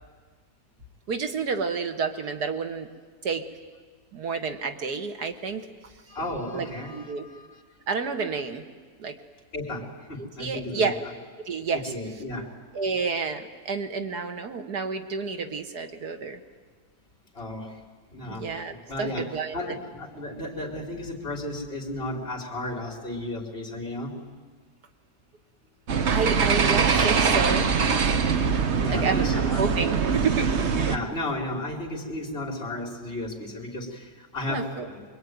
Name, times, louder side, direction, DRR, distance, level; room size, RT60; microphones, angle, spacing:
voice 1, 1.1-2.9 3.2-3.5 4.1-5.7 6.5-7.3 7.9-8.6 9.0-9.2 10.4-11.0 11.5-11.9 12.7-16.4 18.3-19.8 26.1-27.8 28.9-30.5 34.5-34.9, right 5 dB, 85° right, 6 dB, 2.1 m, -30 dB
voice 2, 6.1-7.6 9.5-10.9 11.7-12.5 17.3-17.8 18.1-24.1 28.8-29.7 30.9-35.0, left 1 dB, 35° left, 0 dB, 3.5 m, -34 dB
sound 1, 25.9-31.0, right 5 dB, 50° right, 1.2 m, -23 dB
24.5 x 22.5 x 9.4 m, 1.5 s
omnidirectional pair, 1.7 m